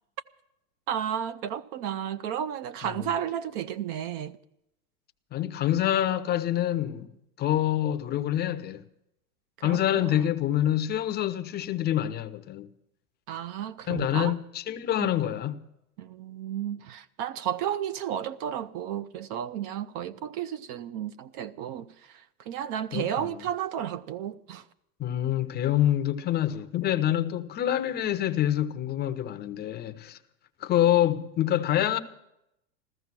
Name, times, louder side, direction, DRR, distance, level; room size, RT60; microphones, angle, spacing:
voice 1, 0.9-4.4 9.6-10.2 13.3-14.3 15.0-15.1 16.0-24.6, right 10 dB, 35° right, 0.5 m, -33 dB
voice 2, 2.8-3.1 5.3-7.1 7.4-8.8 9.6-12.7 13.9-15.6 22.9-23.3 25.0-30.2 30.6-32.0, left 12 dB, 20° left, 0.7 m, -26 dB
14.5 x 14.0 x 6.0 m
hypercardioid pair, 120°, 48 cm